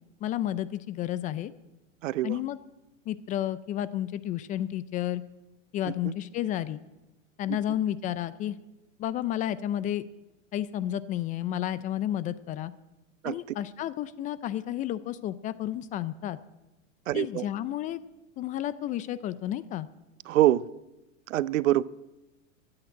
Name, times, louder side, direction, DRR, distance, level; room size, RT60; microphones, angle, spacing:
voice 1, 0.2-1.5 2.2-2.6 3.1-5.2 5.7-6.8 7.4-8.6 9.0-10.0 10.5-12.7 13.2-16.4 17.1-18.0 18.4-19.9, left 12 dB, 20° left, 0.4 m, -31 dB
voice 2, 2.0-2.4 5.9-6.1 13.2-13.4 17.1-17.5 20.3-20.7 21.3-21.8, right 14 dB, 80° right, 0.6 m, -25 dB
14.0 x 8.7 x 9.2 m
hypercardioid pair, 125°, 38 cm